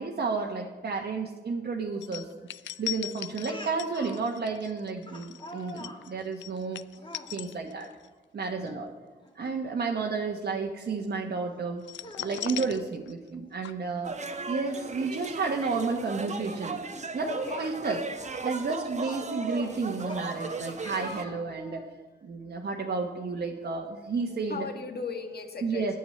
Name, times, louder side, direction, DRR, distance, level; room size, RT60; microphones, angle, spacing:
voice 1, 0.0-2.3 2.8-6.8 7.3-7.9 8.3-8.9 9.3-11.9 12.2-14.1 14.5-16.8 17.1-18.0 18.4-21.8 22.2-24.6 25.6-26.0, right 4 dB, 60° right, 0 dB, 1.1 m, -31 dB
sound 1, 2.0-8.1 8.4-8.7 11.8-13.4 13.6-13.7, left 13 dB, 80° left, 0.4 m, -39 dB
voice 2, 2.7-3.1 3.6-3.7 5.0-8.0 13.4-13.6 16.9-17.7 23.6-23.8 24.3-26.0, left 5 dB, 60° left, 5 dB, 1.6 m, -42 dB
Speech, 3.5-4.2 5.1-6.0 7.0-7.3 8.5-8.8 9.2-9.3 11.0-11.1 11.9-12.8 14.1-14.2 14.5-14.6 16.5-16.6 17.2-17.5 18.6-21.9, left 1 dB, 25° left, 2.1 m, -45 dB
sound 2, 14.0-21.2, right 4 dB, 40° right, 1.0 m, -36 dB
9.1 x 7.1 x 8.7 m, 1.3 s
cardioid pair, 55°, 19 cm